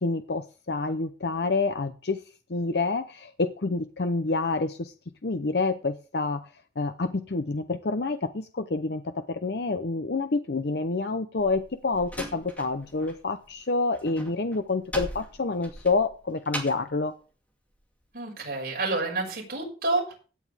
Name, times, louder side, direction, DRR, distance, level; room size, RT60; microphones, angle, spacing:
voice 1, 0.0-2.2 2.5-4.9 5.2-6.5 6.8-17.1, left 3 dB, 65° left, 9 dB, 0.7 m, -28 dB
Slam, 11.4-13.2 13.5-16.9, equal, 10° left, 2.4 m, -39 dB
voice 2, 18.1-20.1, right 2 dB, 55° right, -1 dB, 6.2 m, -29 dB
17.0 x 9.5 x 3.5 m, 0.35 s
head